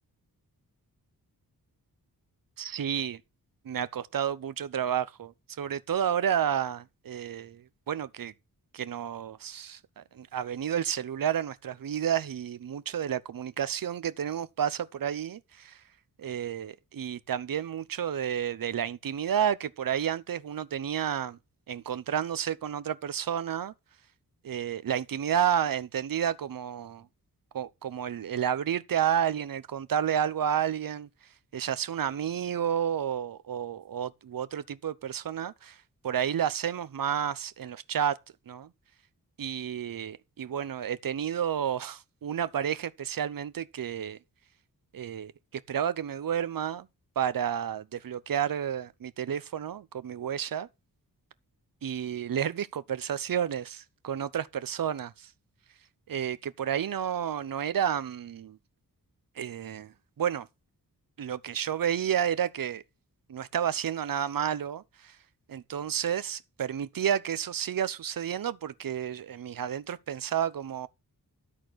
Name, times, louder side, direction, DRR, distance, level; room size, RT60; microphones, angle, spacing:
voice 1, 2.6-3.2 3.6-8.3 8.7-15.8 16.2-21.4 21.7-23.7 24.4-27.1 27.5-31.1 31.5-35.8 36.0-38.2 38.5-38.7 39.4-44.2 44.9-46.9 47.2-50.7 51.8-55.3 56.1-58.6 59.4-60.5 61.2-62.8 63.3-65.2 65.5-70.9, right 9 dB, 60° right, 0.8 m, -31 dB
12.5 x 4.3 x 6.3 m
wide cardioid pair, 115°, 37 cm